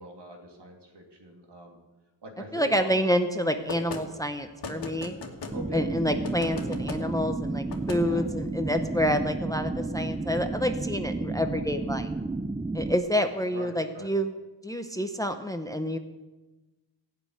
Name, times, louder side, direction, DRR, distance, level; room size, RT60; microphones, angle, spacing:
voice 1, 0.0-1.8 2.2-2.9 5.5-5.8 6.5-6.7 8.0-8.2 13.5-14.1, right 1 dB, 65° right, 2 dB, 2.8 m, -42 dB
voice 2, 2.5-5.1 5.7-12.1 12.7-14.4 14.6-16.0, equal, 10° left, 7 dB, 0.9 m, -28 dB
sound 1, 3.7-4.0 4.6-5.6 6.2-7.0 7.7-8.0, left 3 dB, 60° left, 2.1 m, -37 dB
sound 2, 5.5-13.0, right 3 dB, 10° right, 0.4 m, -32 dB
15.5 x 6.5 x 9.5 m, 1.1 s
wide cardioid pair, 95°, 44 cm